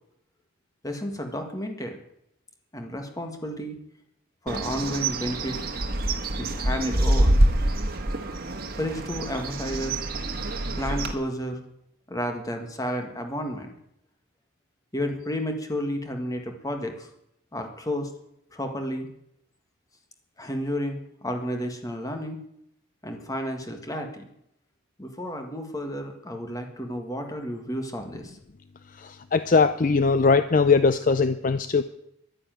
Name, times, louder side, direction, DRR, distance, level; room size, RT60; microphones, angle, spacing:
voice 1, 0.8-2.0 2.7-3.8 4.4-5.6 6.3-7.4 8.8-10.0 10.7-11.6 12.1-13.7 14.9-17.1 17.5-18.1 18.5-19.1 20.4-22.4 23.0-24.3 25.0-28.4, equal, 15° left, 5 dB, 1.8 m, -31 dB
Bird, 4.5-11.1, right 1 dB, 45° right, 1.5 m, -26 dB
voice 2, 29.3-31.8, left 4 dB, 40° left, 12 dB, 0.5 m, -20 dB
11.5 x 10.0 x 9.1 m, 0.78 s
head